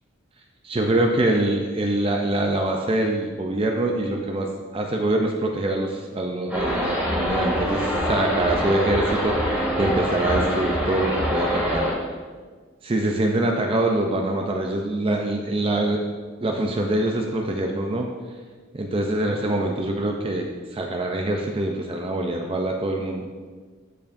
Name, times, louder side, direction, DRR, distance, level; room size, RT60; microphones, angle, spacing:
voice 1, 0.6-4.5 4.7-11.9 12.8-16.0 16.4-18.1 18.7-23.3, right 1 dB, 25° right, 2 dB, 0.4 m, -24 dB
sound 1, 6.5-11.9, equal, 5° right, 2.1 m, -24 dB
12.5 x 4.6 x 2.6 m, 1.5 s
head